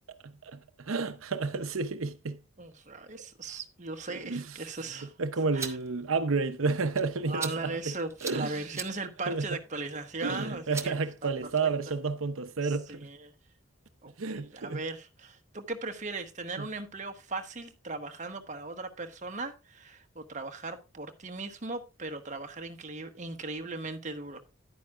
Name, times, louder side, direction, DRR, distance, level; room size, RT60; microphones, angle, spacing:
voice 1, 0.2-2.4 4.1-4.5 5.2-7.9 8.2-8.6 9.3-9.5 10.2-13.1 14.2-14.8 16.6-16.7, right 4 dB, 75° right, 0.7 m, -31 dB
voice 2, 2.6-5.1 5.5-5.8 7.3-11.3 12.6-13.3 14.0-24.4, right 3 dB, 35° right, 1.1 m, -38 dB
sound 1, 5.3-11.9, right 5 dB, 15° right, 0.9 m, -44 dB
11.0 x 9.3 x 2.5 m
head